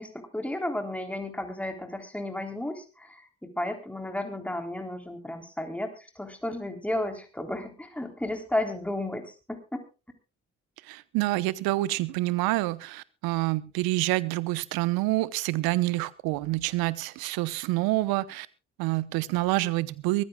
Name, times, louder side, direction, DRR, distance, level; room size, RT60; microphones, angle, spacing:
voice 1, 0.0-9.8, left 1 dB, 5° left, 5 dB, 3.6 m, -33 dB
voice 2, 10.9-18.5 18.8-20.2, right 19 dB, 75° right, 18 dB, 1.0 m, -27 dB
23.5 x 14.5 x 2.3 m, 0.32 s
hypercardioid pair, 45°, 37 cm